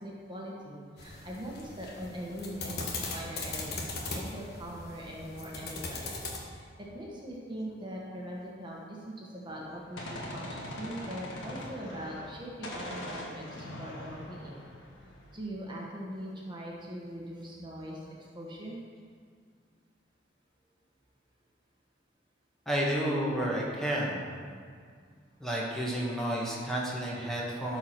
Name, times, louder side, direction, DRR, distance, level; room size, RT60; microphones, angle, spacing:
voice 1, 0.0-6.1 6.5-14.6 15.3-18.8, equal, 25° right, -3 dB, 1.5 m, -41 dB
sound 1, 1.0-6.4, left 3 dB, 55° left, 1.4 m, -39 dB
Gunshot gunfire, 9.5-12.4 12.6-15.4, left 1 dB, 75° left, 2.0 m, -42 dB
voice 2, 22.6-24.3 25.4-27.8, right 1 dB, ahead, -5 dB, 1.6 m, -31 dB
13.0 x 4.9 x 6.0 m, 2.1 s
head